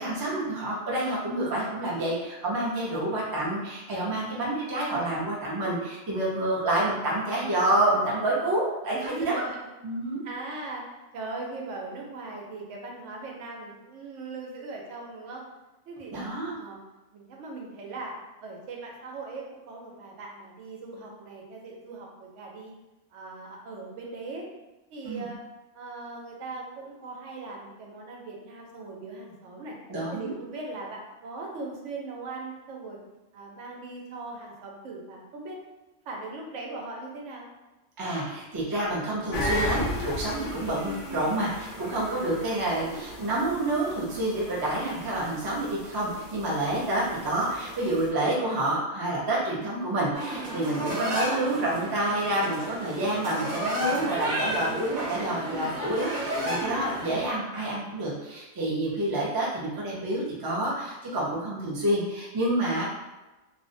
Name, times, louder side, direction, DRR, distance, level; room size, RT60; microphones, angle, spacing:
voice 1, 0.0-9.4 9.8-10.2 16.1-16.5 25.0-25.3 29.9-30.4 38.0-62.8, right 1 dB, 30° right, -5 dB, 0.4 m, -28 dB
voice 2, 8.9-9.7 10.2-10.8 11.1-15.4 15.9-16.1 16.6-16.8 17.1-18.1 18.4-22.7 23.1-24.5 24.9-25.4 25.7-29.7 30.1-33.0 33.3-35.6 36.1-37.5, right 3 dB, 85° right, -1 dB, 0.9 m, -39 dB
sound 1, 39.3-48.1, left 1 dB, 85° left, 1.0 m, -36 dB
sound 2, 50.1-57.3, equal, 50° right, 0.8 m, -32 dB
2.4 x 2.0 x 2.5 m, 1.1 s
omnidirectional pair, 1.2 m